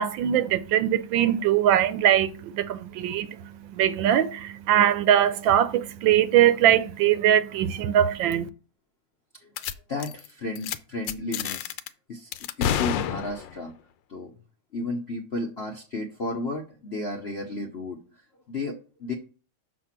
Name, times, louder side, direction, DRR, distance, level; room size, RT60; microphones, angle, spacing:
voice 1, 0.0-8.5, right 10 dB, 75° right, 1.2 m, -22 dB
sound 1, 9.6-9.7 10.0-10.3 10.6-10.8 11.1-11.9 12.3-13.6, left 10 dB, 75° left, 1.2 m, -29 dB
voice 2, 9.9-11.8 12.1-12.3 12.6-13.7 14.1-14.3 14.7-19.1, left 2 dB, 55° left, 0.7 m, -33 dB
6.6 x 4.5 x 5.8 m
omnidirectional pair, 2.2 m